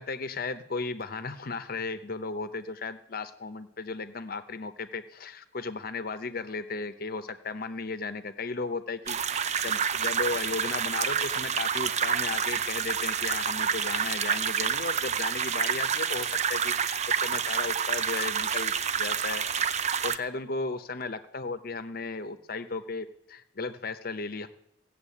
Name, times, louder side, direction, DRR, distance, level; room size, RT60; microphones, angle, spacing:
voice 1, 0.0-19.7 20.0-24.5, left 4 dB, 55° left, 11 dB, 0.8 m, -35 dB
sound 1, 9.1-20.2, right 7 dB, 40° right, 0.5 m, -28 dB
16.0 x 7.4 x 8.5 m, 0.80 s
head